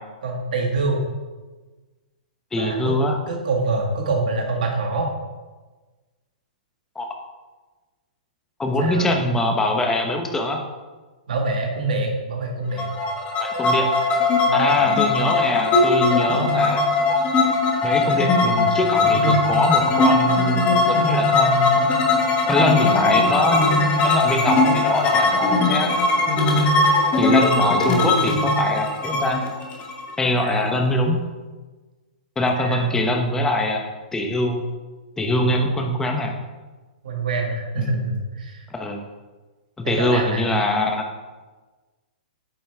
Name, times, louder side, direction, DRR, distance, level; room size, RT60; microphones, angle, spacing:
voice 1, 0.2-1.0 2.6-2.9 3.3-5.1 8.8-9.1 11.3-12.9 14.5-14.7 30.4-30.8 32.5-33.0 35.3-35.4 37.0-38.6 39.8-40.5, right 3 dB, 70° right, 1 dB, 2.0 m, -25 dB
voice 2, 2.5-3.2 6.9-7.1 8.6-10.6 13.4-13.9 14.5-16.8 17.8-21.8 22.5-23.7 24.0-25.9 27.2-29.4 30.2-31.2 32.4-33.8 34.1-34.6 35.2-36.3 37.8-38.1 38.7-39.0 39.8-41.0, left 1 dB, 10° left, 2 dB, 1.1 m, -23 dB
sound 1, 12.8-30.5, left 3 dB, 25° left, 1.5 m, -19 dB
8.9 x 5.5 x 3.7 m, 1.3 s
hypercardioid pair, 130°, 5 cm